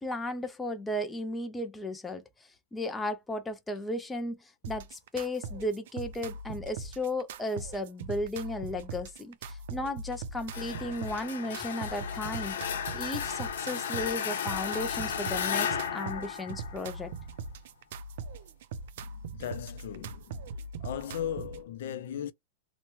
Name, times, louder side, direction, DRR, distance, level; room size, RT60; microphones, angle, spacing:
voice 1, 0.0-17.1, left 1 dB, 5° left, 0.3 m, -35 dB
sound 1, 4.6-21.6, right 4 dB, 55° right, 0.4 m, -41 dB
sound 2, 10.5-17.2, left 8 dB, 85° left, 0.7 m, -34 dB
voice 2, 19.0-20.5 20.8-22.3, left 9 dB, 65° left, 0.5 m, -37 dB
2.9 x 2.1 x 2.9 m
supercardioid pair, 175°, 0 cm